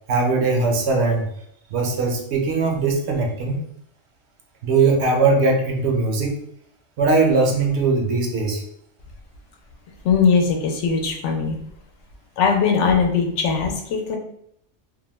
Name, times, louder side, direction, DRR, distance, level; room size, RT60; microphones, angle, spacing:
voice 1, 0.1-1.3 1.7-3.6 4.6-6.4 7.0-8.6, right 3 dB, 70° right, 2 dB, 0.8 m, -20 dB
voice 2, 10.0-11.5 12.4-14.2, left 5 dB, 75° left, 3 dB, 0.9 m, -20 dB
2.5 x 2.1 x 3.0 m, 0.72 s
omnidirectional pair, 1.3 m